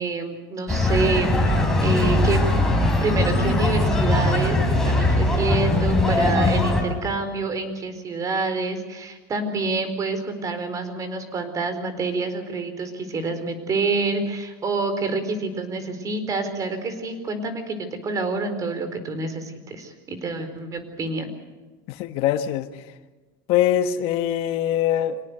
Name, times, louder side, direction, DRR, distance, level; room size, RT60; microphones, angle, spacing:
voice 1, 0.0-2.4 3.0-17.8 18.0-21.3, right 3 dB, 30° right, 10 dB, 4.5 m, -27 dB
sound 1, 0.7-6.8, left 1 dB, 5° left, 6.9 m, -20 dB
voice 2, 21.9-22.7 23.5-25.2, left 11 dB, 60° left, 9 dB, 1.5 m, -22 dB
25.5 x 19.0 x 8.2 m, 1.2 s
supercardioid pair, 115°, 11 cm